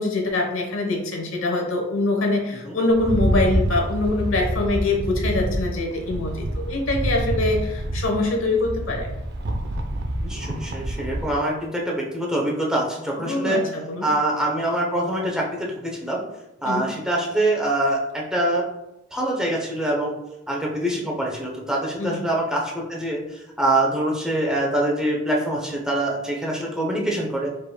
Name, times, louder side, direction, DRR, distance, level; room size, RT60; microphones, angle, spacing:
voice 1, 0.0-9.1 13.2-14.1 16.6-16.9 22.0-22.2, left 2 dB, 75° left, 1 dB, 1.0 m, -24 dB
Rattle, 2.9-11.4, right 1 dB, 55° right, 0.6 m, -27 dB
voice 2, 10.2-13.6 14.0-16.2 16.6-18.7 19.1-20.1 20.5-27.6, right 1 dB, 5° right, -2 dB, 0.7 m, -24 dB
5.1 x 4.2 x 2.2 m, 0.93 s
head